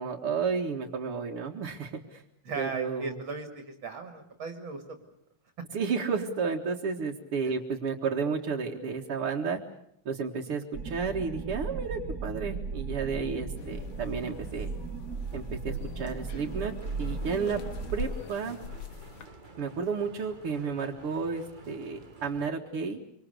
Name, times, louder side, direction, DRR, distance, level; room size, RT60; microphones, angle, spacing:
voice 1, 0.0-2.2 2.6-3.2 5.7-9.6 10.1-14.7 15.3-16.7 17.0-17.6 17.9-18.6 19.6-23.0, right 5 dB, 80° right, -1 dB, 2.7 m, -32 dB
voice 2, 2.4-5.0 5.6-5.7 7.4-7.5, right 4 dB, 60° right, 6 dB, 3.1 m, -37 dB
sound 1, 10.7-18.1, right 5 dB, 45° right, 2.5 m, -36 dB
sound 2, 13.6-19.3, left 6 dB, 65° left, 2.4 m, -43 dB
sound 3, 16.3-22.5, right 3 dB, 25° right, 1.6 m, -51 dB
26.0 x 26.0 x 6.8 m, 0.74 s
omnidirectional pair, 2.4 m